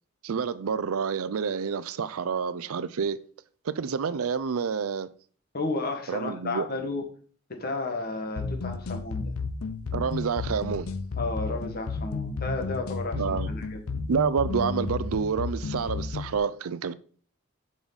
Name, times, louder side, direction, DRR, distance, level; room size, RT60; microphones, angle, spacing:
voice 1, 0.2-3.2 3.7-5.1 6.1-6.7 9.9-10.9 13.1-13.5 14.1-16.9, right 6 dB, 80° right, 0.5 m, -28 dB
voice 2, 5.5-7.0 7.6-9.3 11.1-13.8, left 3 dB, 45° left, 1.5 m, -32 dB
sound 1, 8.4-16.4, left 4 dB, 80° left, 0.6 m, -32 dB
7.1 x 6.3 x 4.0 m
head